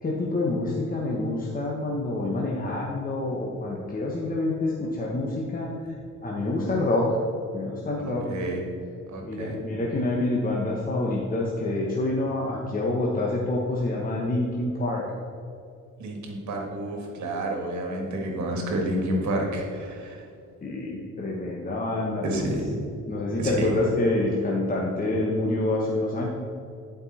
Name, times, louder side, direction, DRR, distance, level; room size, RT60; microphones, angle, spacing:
voice 1, 0.0-5.7 6.2-7.2 7.5-8.3 9.2-15.0 20.6-22.4 23.1-26.3, left 2 dB, 30° left, -3 dB, 1.2 m, -27 dB
voice 2, 6.4-6.7 8.1-8.6 9.1-9.6 16.0-20.3 22.2-22.7 23.4-23.8, right 1 dB, 70° right, 1 dB, 1.9 m, -30 dB
10.5 x 5.3 x 4.3 m, 2.4 s
cardioid pair, 90°, 30 cm